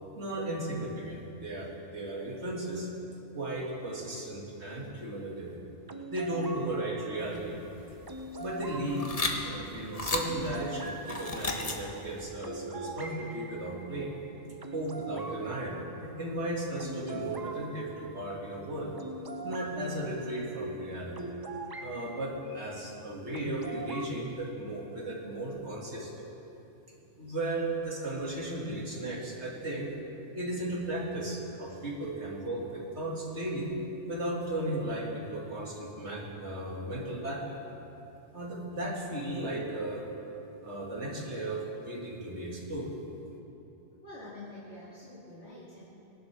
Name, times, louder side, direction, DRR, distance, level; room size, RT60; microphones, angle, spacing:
voice 1, 0.2-2.9 3.3-5.5 6.1-7.6 8.4-14.2 14.7-18.9 19.4-21.2 21.8-26.3 27.2-29.9 30.3-33.8 34.0-37.6 38.3-40.0 40.6-42.9, right 1 dB, 70° right, -3 dB, 2.8 m, -35 dB
sound 1, 5.9-22.2 23.3-24.1, right 2 dB, 30° right, 0.4 m, -43 dB
sound 2, 7.2-12.1, left 2 dB, 35° left, 1.2 m, -35 dB
voice 2, 44.0-45.9, left 1 dB, 65° left, -8 dB, 2.6 m, -46 dB
22.5 x 11.5 x 3.6 m, 2.9 s
omnidirectional pair, 1.2 m